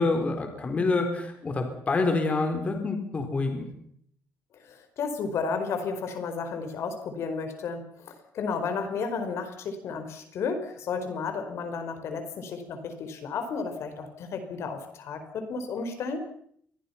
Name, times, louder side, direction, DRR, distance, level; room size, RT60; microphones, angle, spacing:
voice 1, 0.0-3.7, left 3 dB, 25° left, 5 dB, 4.2 m, -27 dB
voice 2, 4.6-16.3, left 5 dB, 60° left, 8 dB, 5.2 m, -33 dB
27.5 x 22.5 x 5.9 m, 0.66 s
cardioid pair, 160°, 5 cm